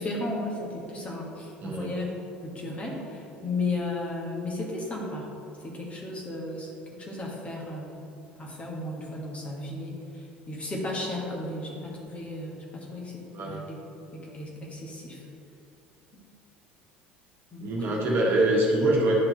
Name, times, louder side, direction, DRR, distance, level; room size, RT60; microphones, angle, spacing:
voice 1, 0.0-2.1 2.4-5.3 5.6-6.7 7.0-7.9 8.4-13.8 14.1-15.2 17.5-18.0, left 2 dB, 25° left, -3 dB, 1.6 m, -34 dB
voice 2, 1.6-1.9 13.3-13.6 17.6-19.1, right 1 dB, 45° right, -3 dB, 1.6 m, -24 dB
9.9 x 4.4 x 4.0 m, 2.9 s
figure-of-eight pair, 65°, 6 cm